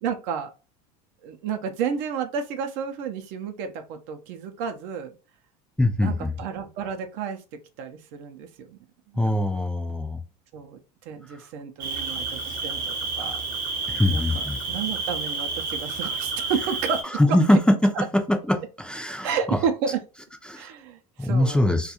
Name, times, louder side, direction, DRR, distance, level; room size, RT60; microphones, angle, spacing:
voice 1, 0.0-0.5 1.2-5.1 6.0-7.4 7.8-8.8 9.2-9.6 10.5-10.8 11.1-13.4 13.7-13.8 14.1-17.1 17.5-17.6 18.0-18.1 19.2-20.0 20.5-21.7, right 7 dB, 60° right, 0.5 m, -31 dB
voice 2, 5.8-6.3 9.2-10.2 11.3-11.4 13.9-14.6 17.1-19.6 20.5-20.7 21.2-21.9, left 1 dB, 5° left, 0.4 m, -22 dB
Cricket, 11.8-17.0, right 4 dB, 45° right, 0.9 m, -30 dB
2.3 x 2.3 x 2.8 m
hypercardioid pair, 90°, 21 cm